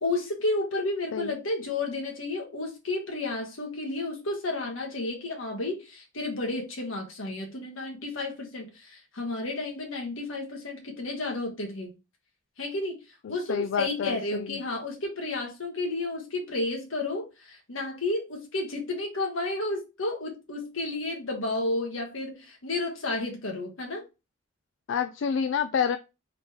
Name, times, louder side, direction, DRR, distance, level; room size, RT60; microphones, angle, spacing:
voice 1, 0.0-11.9 12.6-13.0 13.3-24.0, left 2 dB, 90° left, 1.4 m, -32 dB
voice 2, 13.2-14.6 24.9-26.0, left 7 dB, 70° left, 0.3 m, -28 dB
3.8 x 3.2 x 3.5 m
head